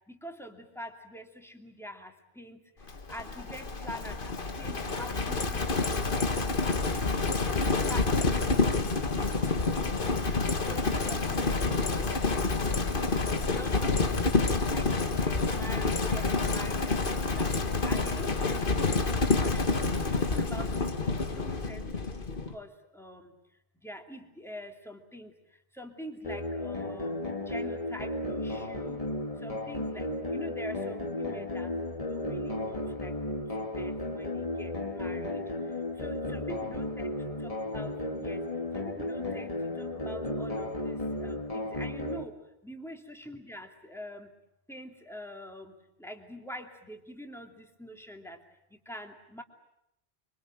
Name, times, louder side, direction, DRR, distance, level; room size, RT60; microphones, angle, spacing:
voice 1, 0.1-2.6 3.1-7.2 7.6-9.3 10.0-12.8 13.4-19.9 20.2-23.3 23.8-25.3 25.7-27.2 27.5-29.0 29.4-31.7 32.0-35.4 36.0-37.1 37.4-38.4 38.7-42.4 42.6-44.3 44.7-48.4 48.7-49.4, equal, ahead, 3 dB, 2.7 m, -45 dB
Livestock farm animals working animals, 2.9-22.5, left 3 dB, 55° left, 1.8 m, -28 dB
sound 1, 26.2-42.2, left 1 dB, 35° left, 2.1 m, -34 dB
25.5 x 25.0 x 9.0 m, 0.81 s
omnidirectional pair, 1.1 m